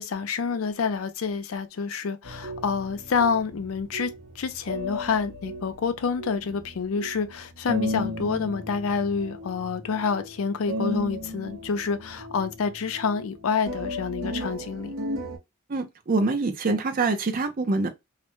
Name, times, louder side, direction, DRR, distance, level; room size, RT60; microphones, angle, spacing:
voice 1, 0.0-14.9, left 5 dB, 90° left, 0.5 m, -28 dB
sound 1, 2.2-15.4, left 1 dB, 65° right, 0.8 m, -35 dB
voice 2, 15.7-17.9, right 3 dB, 45° right, 0.5 m, -25 dB
2.4 x 2.1 x 2.9 m
head